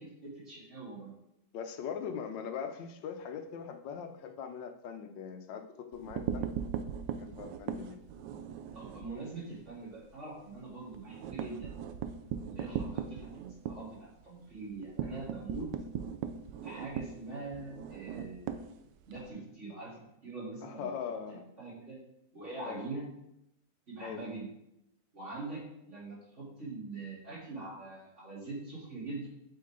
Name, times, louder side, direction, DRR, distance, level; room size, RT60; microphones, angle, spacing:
voice 1, 0.2-1.1 8.7-11.7 12.4-15.7 16.6-18.7 19.0-19.9 20.2-22.0 22.3-23.0 23.9-24.5 25.1-29.3, right 3 dB, 40° right, -7 dB, 3.7 m, -43 dB
voice 2, 1.5-6.5 7.2-8.0 20.6-21.4 22.6-22.8 24.0-24.2, left 7 dB, 85° left, 7 dB, 1.5 m, -41 dB
sound 1, 5.9-9.1 9.5-9.7 10.0-10.1 10.4-19.3, right 8 dB, 80° right, 1.3 m, -38 dB
8.5 x 5.4 x 3.8 m, 0.81 s
omnidirectional pair, 1.9 m